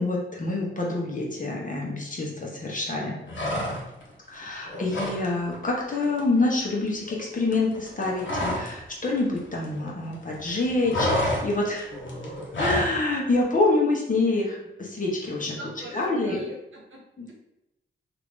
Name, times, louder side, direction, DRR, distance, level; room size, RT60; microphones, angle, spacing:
voice 1, 0.0-3.2 4.3-11.9 12.6-15.6 15.9-16.4 17.2-17.3, left 2 dB, 40° left, -2 dB, 1.0 m, -26 dB
horse snort, 3.3-4.1 4.4-5.3 5.5-5.7 6.0-8.8 9.1-10.2 10.4-13.0, left 1 dB, 65° left, 0.9 m, -29 dB
voice 2, 15.6-17.0, right 1 dB, 70° right, -1 dB, 1.0 m, -40 dB
2.9 x 2.5 x 3.6 m, 0.91 s
cardioid pair, 60°, 21 cm